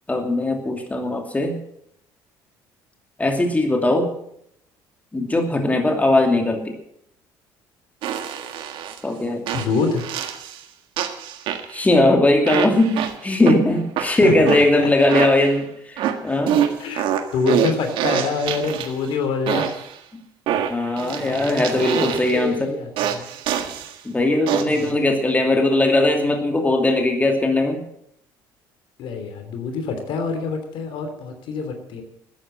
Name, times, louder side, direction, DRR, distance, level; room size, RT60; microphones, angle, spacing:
voice 1, 0.1-1.6 3.2-4.1 5.1-6.7 9.0-9.4 11.7-16.6 20.7-22.7 24.0-27.8, left 1 dB, 15° left, 3 dB, 2.7 m, -19 dB
sound 1, 8.0-9.0 9.5-10.6 11.0-11.9 12.5-13.6 14.0-15.6 16.0-19.1 19.5-19.9 20.5-22.5 23.0-23.9 24.5-24.9, right 9 dB, 70° right, 1.6 m, -25 dB
voice 2, 9.5-10.1 14.0-14.3 16.8-17.0 17.3-19.8 21.2-22.1 22.3-23.4 24.7-25.1 29.0-32.0, left 5 dB, 65° left, 6 dB, 3.1 m, -26 dB
13.0 x 10.0 x 7.6 m, 0.72 s
supercardioid pair, 80°, 9 cm